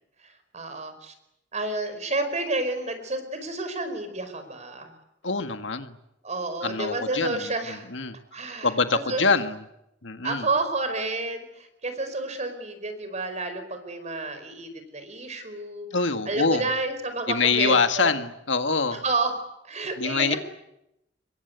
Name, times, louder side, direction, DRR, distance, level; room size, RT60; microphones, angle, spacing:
voice 1, 0.2-1.1 1.5-4.9 6.2-7.9 8.3-9.2 10.2-15.9 16.3-18.1 19.0-19.3 19.7-20.4, right 2 dB, 40° right, 9 dB, 4.8 m, -30 dB
voice 2, 5.2-6.0 6.6-8.2 8.6-9.6 10.0-10.5 15.9-16.7 17.3-19.0 19.8-20.4, left 4 dB, 85° left, 8 dB, 1.8 m, -25 dB
26.0 x 22.5 x 9.4 m, 0.86 s
head